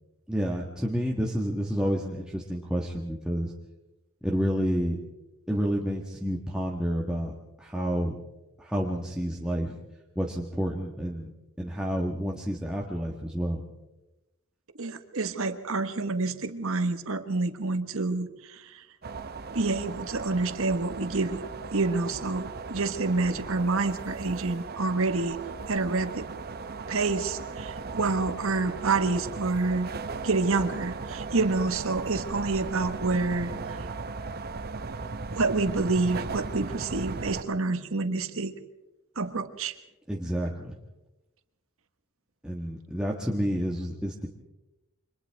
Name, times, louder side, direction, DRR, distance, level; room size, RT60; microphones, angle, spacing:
voice 1, 0.3-3.5 4.2-5.0 5.5-8.2 8.6-9.8 10.1-11.3 11.6-13.6 40.1-40.7 42.4-44.3, equal, 5° right, -2 dB, 1.4 m, -29 dB
voice 2, 14.8-18.8 19.5-21.4 21.7-25.4 25.7-26.3 26.9-29.9 30.2-33.8 35.3-38.5 39.1-39.7, right 3 dB, 70° right, 9 dB, 1.4 m, -28 dB
sound 1, 19.0-37.4, right 4 dB, 45° right, 0.8 m, -37 dB
29.5 x 25.0 x 3.5 m, 1.0 s
head